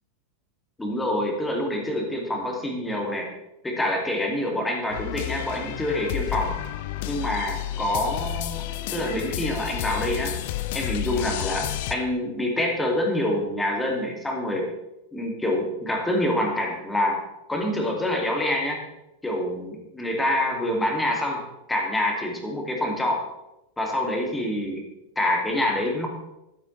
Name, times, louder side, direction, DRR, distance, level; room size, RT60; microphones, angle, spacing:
voice 1, 0.8-3.3 3.6-6.5 7.1-8.6 8.9-10.3 10.7-14.7 15.1-17.2 17.5-18.8 19.2-21.4 21.7-23.2 23.8-24.8 25.2-26.2, left 1 dB, 10° left, 0 dB, 2.4 m, -26 dB
sound 1, 4.9-11.9, left 14 dB, 50° left, 0.6 m, -31 dB
11.5 x 9.6 x 3.3 m, 0.91 s
figure-of-eight pair, 90°, 0 cm